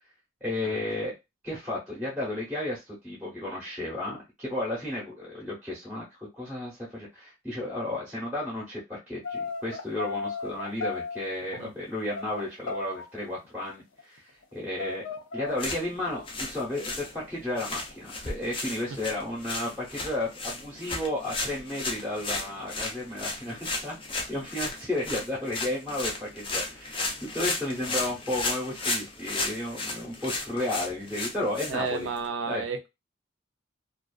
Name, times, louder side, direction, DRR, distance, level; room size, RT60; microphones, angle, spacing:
voice 1, 0.4-1.1 1.4-15.0 15.3-32.1 32.5-32.6, left 1 dB, 5° right, 0.8 m, -33 dB
sound 1, 9.2-11.6 12.1-13.1 13.5-13.6 13.8-14.5 14.8-15.6 16.0-16.2 16.8-17.2 17.8-18.0, left 4 dB, 70° left, 0.6 m, -35 dB
sound 2, 15.5-32.3, left 3 dB, 25° left, 0.5 m, -35 dB
voice 2, 31.7-32.9, right 5 dB, 70° right, 0.5 m, -33 dB
2.4 x 2.3 x 2.3 m
head